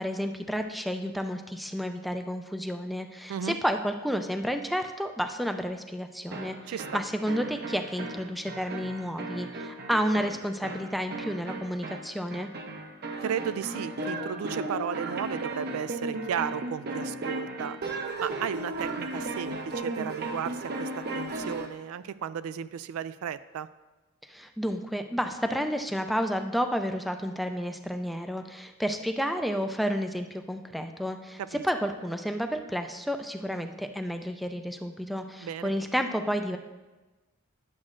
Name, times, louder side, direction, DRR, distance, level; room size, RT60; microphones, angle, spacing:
voice 1, 0.0-6.6 6.9-12.5 24.3-36.6, equal, ahead, 6 dB, 0.4 m, -31 dB
sound 1, 6.3-21.8, right 2 dB, 50° right, 0.7 m, -36 dB
voice 2, 6.7-7.0 13.2-17.8 18.2-23.7 31.4-31.6 35.4-35.7, right 8 dB, 85° right, 14 dB, 0.3 m, -34 dB
10.5 x 7.3 x 2.5 m, 1.2 s
head